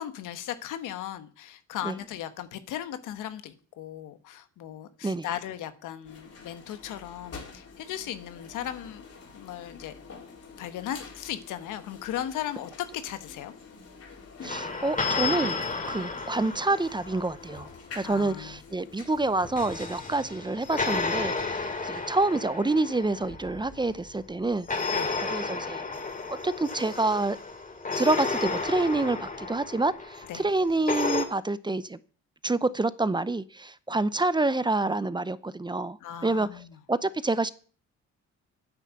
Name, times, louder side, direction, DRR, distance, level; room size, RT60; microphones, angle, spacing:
voice 1, 0.0-9.0 9.3-9.9 10.6-13.5 18.0-18.6 24.9-25.1 30.3-30.4 36.0-36.8, left 11 dB, 90° left, 10 dB, 1.4 m, -37 dB
sound 1, 6.0-20.2, left 4 dB, 55° left, 4.1 m, -47 dB
voice 2, 14.4-15.6 15.9-17.7 17.9-24.7 25.3-25.8 26.3-27.4 27.9-32.0 32.4-36.0 36.2-36.5 36.9-37.5, right 2 dB, 15° right, 16 dB, 0.7 m, -27 dB
sound 2, 14.5-17.7 19.2-24.1 24.7-31.3, left 4 dB, 25° left, 2.5 m, -32 dB
9.9 x 9.0 x 7.7 m, 0.42 s
cardioid pair, 90°, 30 cm